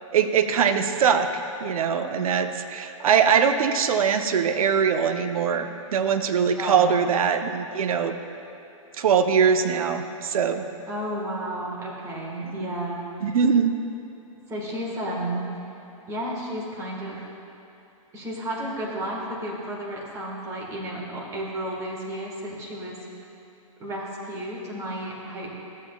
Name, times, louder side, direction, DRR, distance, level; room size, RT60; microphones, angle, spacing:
voice 1, 0.1-8.2 9.0-10.6 12.5-12.6 13.2-13.7, right 7 dB, 80° right, 8 dB, 0.7 m, -22 dB
voice 2, 6.6-7.0 10.9-13.0 14.5-15.5 16.1-17.2 18.1-23.0 23.8-25.5, right 1 dB, 15° right, -4 dB, 1.4 m, -32 dB
14.0 x 7.3 x 2.3 m, 2.8 s
hypercardioid pair, 155°, 18 cm